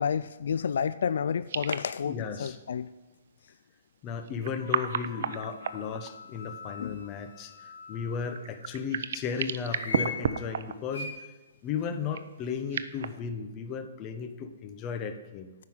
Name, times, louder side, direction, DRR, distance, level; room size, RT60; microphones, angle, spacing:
voice 1, 0.0-2.9 6.8-7.0, left 7 dB, 70° left, 15 dB, 0.3 m, -30 dB
sound 1, 1.5-1.9 2.4-2.5 4.2-6.4 8.3-11.0 12.1-13.1, right 8 dB, 65° right, 0.6 m, -33 dB
voice 2, 2.0-2.6 4.0-11.1 11.6-15.5, left 6 dB, 25° left, 8 dB, 1.0 m, -35 dB
sound 2, 4.6-8.4 9.7-10.2 10.9-11.1, left 4 dB, 90° left, 3.8 m, -41 dB
9.5 x 5.7 x 7.8 m, 1.2 s
hypercardioid pair, 150°, 0 cm